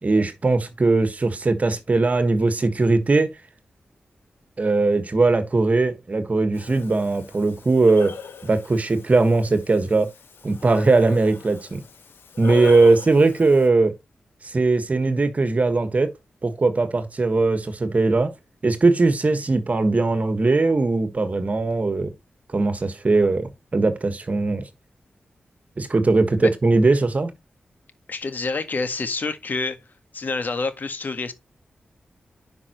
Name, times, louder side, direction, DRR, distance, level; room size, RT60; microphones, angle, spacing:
voice 1, 0.0-3.3 4.6-8.2 8.4-10.1 10.4-11.8 12.4-13.9 14.5-16.1 16.4-18.3 18.6-22.1 22.5-24.6 25.8-27.3, right 3 dB, 40° right, 1.6 m, -20 dB
Breathing, 6.5-13.7, left 6 dB, 85° left, 1.3 m, -39 dB
voice 2, 28.1-29.8 30.1-31.3, left 3 dB, 55° left, 1.6 m, -27 dB
10.0 x 5.5 x 3.1 m
cardioid pair, 75°, 4 cm